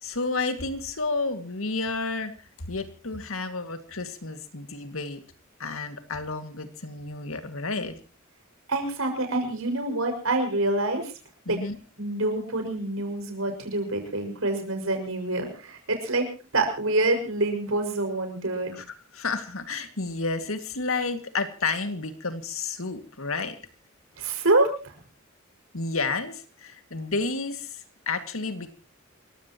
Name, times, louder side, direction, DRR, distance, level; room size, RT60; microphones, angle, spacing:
voice 1, 0.0-5.2 5.6-7.9 11.5-11.8 18.7-18.9 19.1-23.6 25.7-28.7, left 3 dB, 80° left, 8 dB, 2.2 m, -31 dB
voice 2, 8.7-11.1 11.5-11.6 12.0-16.3 16.5-18.8 24.2-24.9, right 2 dB, 80° right, 4 dB, 5.8 m, -26 dB
28.0 x 15.0 x 3.0 m, 0.35 s
head